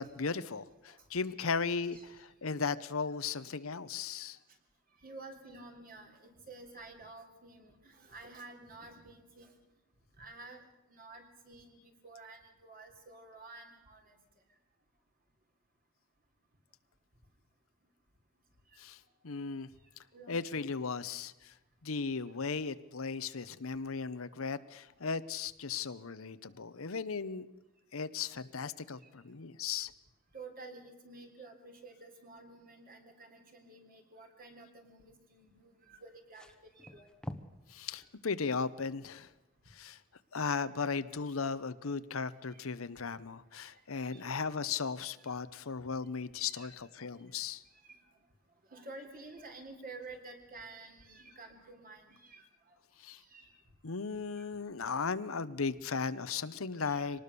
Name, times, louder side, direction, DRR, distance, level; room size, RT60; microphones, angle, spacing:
voice 1, 0.0-4.4 18.8-19.7 20.3-21.5 21.8-27.5 27.9-29.9 37.7-39.3 39.7-40.0 40.3-47.6 53.0-53.2 53.8-57.2, left 5 dB, 80° left, 14 dB, 0.9 m, -36 dB
voice 2, 5.0-9.5 10.2-10.6 10.9-11.8 12.0-14.2 18.7-18.8 20.1-20.6 24.5-24.6 29.0-29.1 30.3-37.1 42.5-42.7 43.9-44.4 45.2-45.4 46.4-46.7 47.8-48.0 48.7-52.8 53.2-53.5 54.4-54.6 56.8-57.1, right 3 dB, 45° right, 4 dB, 3.6 m, -51 dB
sound 1, 36.0-37.7 38.0-38.2 39.3-39.4, equal, 5° left, 1.0 m, -46 dB
24.5 x 19.0 x 6.9 m, 1.0 s
head